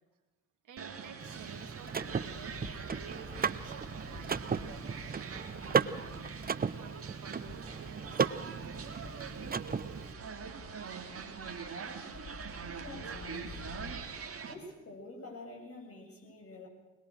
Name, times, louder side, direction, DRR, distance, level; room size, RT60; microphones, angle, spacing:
voice 1, 0.6-8.7, right 6 dB, 60° right, 5 dB, 3.0 m, -52 dB
sound 1, 0.8-14.5, right 6 dB, 40° right, 2.6 m, -44 dB
Car / Mechanisms, 1.2-10.1, right 6 dB, 25° right, 0.9 m, -36 dB
Meadow Alps, 1.8-13.9, left 2 dB, 70° left, 5.3 m, -51 dB
voice 2, 12.8-13.6 14.4-16.7, left 2 dB, 40° left, 0 dB, 7.5 m, -47 dB
21.5 x 21.5 x 6.5 m, 1.1 s
hypercardioid pair, 50°, 34 cm